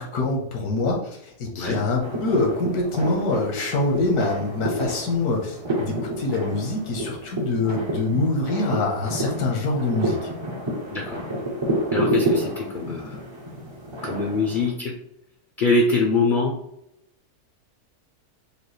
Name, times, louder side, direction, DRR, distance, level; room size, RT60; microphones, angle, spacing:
voice 1, 0.0-10.2, left 2 dB, 80° left, 0 dB, 1.5 m, -25 dB
sound 1, 2.0-14.7, right 1 dB, 45° right, 0.3 m, -29 dB
voice 2, 10.9-11.2 11.9-13.2 14.0-14.9 15.6-16.5, left 3 dB, 65° left, 0 dB, 0.5 m, -23 dB
5.2 x 2.3 x 3.1 m, 0.78 s
omnidirectional pair, 1.6 m